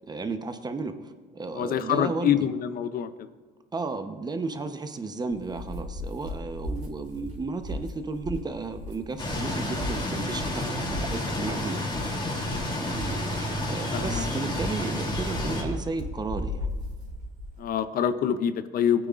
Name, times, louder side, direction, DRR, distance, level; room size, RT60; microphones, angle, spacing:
voice 1, 0.0-2.5 3.7-12.1 12.7-13.2 13.7-16.7, right 3 dB, 25° right, 8 dB, 0.8 m, -34 dB
voice 2, 1.5-3.3 12.3-12.6 13.9-14.3 17.6-19.1, left 9 dB, 60° left, 12 dB, 0.6 m, -26 dB
sound 1, 5.3-17.6, left 1 dB, 45° right, 3.3 m, -37 dB
sound 2, 9.2-15.6, left 1 dB, 30° left, 3.0 m, -30 dB
16.5 x 9.0 x 2.5 m, 1.5 s
cardioid pair, 110°, 17 cm